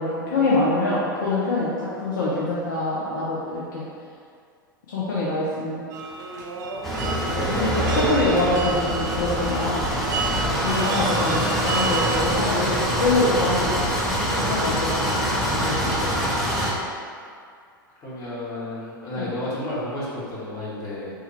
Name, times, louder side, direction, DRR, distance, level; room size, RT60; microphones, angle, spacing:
voice 1, 0.0-3.9 4.9-5.8 7.4-9.9 10.6-13.7 14.3-16.3 19.2-19.3, left 2 dB, 60° left, -7 dB, 0.5 m, -25 dB
sound 1, 5.9-12.2, right 4 dB, 55° right, 0.4 m, -30 dB
sound 2, 6.8-16.7, equal, ahead, 0.5 m, -24 dB
voice 2, 18.0-21.1, left 1 dB, 30° left, -8 dB, 1.0 m, -32 dB
3.2 x 2.2 x 3.2 m, 2.2 s
figure-of-eight pair, 90°, 12 cm